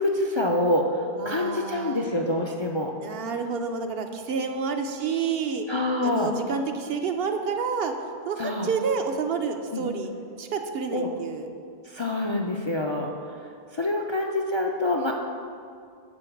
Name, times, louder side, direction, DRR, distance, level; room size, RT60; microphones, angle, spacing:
voice 1, 0.0-2.9 5.7-6.3 8.4-8.7 9.7-9.8 10.9-11.1 11.9-13.1 13.7-15.1, left 1 dB, 40° left, 1 dB, 0.4 m, -26 dB
voice 2, 1.2-2.1 3.0-5.7 6.0-7.9 8.3-10.1 10.4-11.5, right 5 dB, 70° right, 5 dB, 0.9 m, -29 dB
9.0 x 3.8 x 7.1 m, 2.3 s
omnidirectional pair, 1.1 m